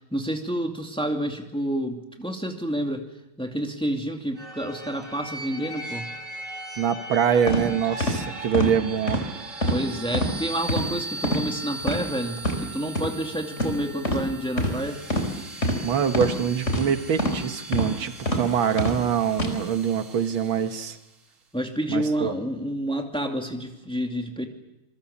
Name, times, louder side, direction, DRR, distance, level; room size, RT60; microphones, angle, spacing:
voice 1, 0.1-3.0 3.4-6.1 9.7-15.0 21.5-24.5, right 1 dB, 5° left, 3 dB, 2.4 m, -29 dB
sound 1, 4.4-21.1, right 2 dB, 40° right, 2.6 m, -39 dB
voice 2, 6.8-9.2 15.8-21.0 21.9-22.3, right 8 dB, 80° right, 8 dB, 2.1 m, -24 dB
sound 2, 7.5-7.6 8.0-8.2 8.5-8.7 9.1-9.2 9.6-9.8 10.1-10.3 10.7-10.9 11.2-11.4 11.8-12.0 12.4-12.6 12.9-13.1 13.6-13.7 14.0-14.2 14.6-14.7 15.1-15.3 15.6-15.8 16.1-16.3 16.7-16.8 17.2-17.4 17.7-17.9 18.3-18.4 18.8-19.0 19.3-19.5, equal, 35° left, 4.5 m, -24 dB
27.5 x 23.0 x 7.2 m, 0.90 s
omnidirectional pair, 2.2 m